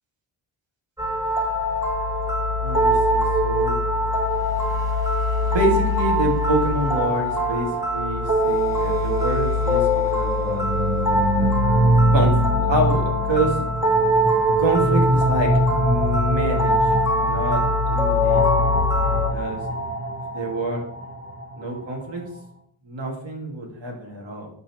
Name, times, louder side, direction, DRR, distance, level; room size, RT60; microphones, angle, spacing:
sound 1, 1.0-19.3, left 1 dB, 5° right, 1.6 m, -22 dB
voice 1, 2.6-3.8 5.4-10.7 12.1-13.6 14.6-16.8 17.2-18.5 19.3-19.6 20.3-20.8 21.5-22.2 22.8-24.5, right 1 dB, 65° right, 0 dB, 2.3 m, -27 dB
sound 2, 10.2-22.0, right 1 dB, 25° right, 1.5 m, -25 dB
11.5 x 4.3 x 3.1 m, 0.65 s
cardioid pair, 80°, 48 cm